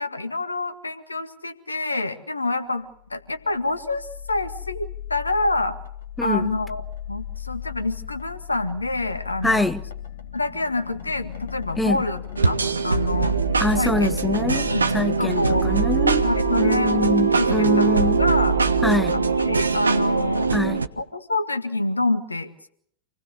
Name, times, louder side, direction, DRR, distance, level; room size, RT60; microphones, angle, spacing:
voice 1, 0.0-5.8 6.2-9.7 10.3-12.2 12.4-12.6 12.8-13.4 13.8-14.2 14.7-14.8 15.2-15.7 16.2-18.6 19.1-20.5 21.0-22.7, left 2 dB, 80° left, 1.9 m, -27 dB
sound 1, 3.2-20.6, left 10 dB, 65° left, 3.6 m, -36 dB
voice 2, 6.2-6.6 9.4-9.8 11.8-12.0 13.6-14.7 14.9-18.2 18.8-19.2 20.5-20.9, left 2 dB, 5° left, 1.0 m, -24 dB
sound 2, 12.4-20.9, right 5 dB, 75° right, 1.2 m, -22 dB
27.5 x 19.5 x 6.8 m
figure-of-eight pair, 90°, 0 cm